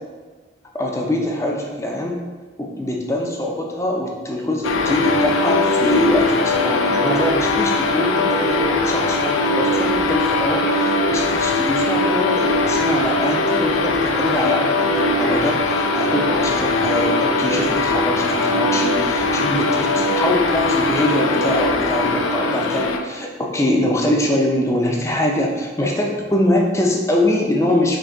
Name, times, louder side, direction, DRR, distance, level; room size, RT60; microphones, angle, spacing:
voice 1, 0.7-2.2 2.6-28.0, left 1 dB, 15° left, 0 dB, 0.4 m, -23 dB
sound 1, 4.6-23.0, left 2 dB, 90° left, 0.4 m, -20 dB
3.9 x 2.7 x 3.4 m, 1.3 s
head